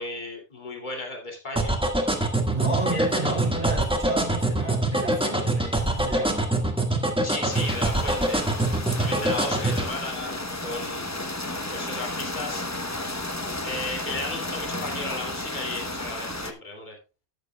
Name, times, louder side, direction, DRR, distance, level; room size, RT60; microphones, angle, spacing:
voice 1, 0.0-1.8 7.2-8.5 9.0-11.1 11.7-12.6 13.6-17.0, left 2 dB, 40° left, 2.6 m, -35 dB
sound 1, 1.6-9.9, right 1 dB, 5° right, 1.5 m, -24 dB
voice 2, 2.5-6.5, right 3 dB, 35° right, 3.8 m, -31 dB
sound 2, 7.5-16.5, left 2 dB, 15° left, 0.8 m, -33 dB
12.5 x 9.3 x 2.2 m
omnidirectional pair, 1.2 m